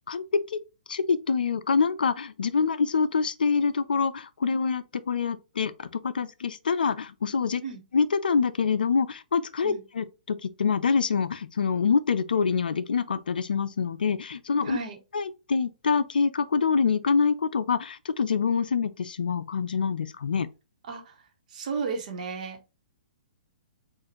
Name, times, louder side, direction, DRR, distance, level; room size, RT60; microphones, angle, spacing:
voice 1, 0.1-0.6 0.9-7.6 7.9-14.8 15.1-20.5, left 5 dB, 80° left, 0.4 m, -26 dB
voice 2, 14.6-15.0 20.8-21.2 21.5-22.6, right 5 dB, 55° right, 1.1 m, -34 dB
4.0 x 2.5 x 2.9 m
hypercardioid pair, 130°, 5 cm